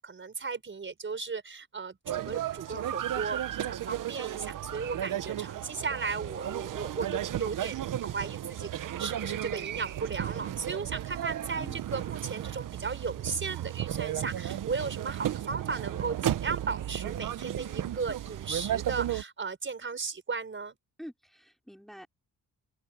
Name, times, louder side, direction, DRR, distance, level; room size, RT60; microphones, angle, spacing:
voice 1, 0.0-3.4 3.7-20.8, right 4 dB, 35° right, 5.3 m, -36 dB
sound 1, 2.1-19.2, right 11 dB, 60° right, 0.9 m, -34 dB
voice 2, 21.0-22.1, equal, ahead, 4.9 m, -46 dB
open air
cardioid pair, 125°, 36 cm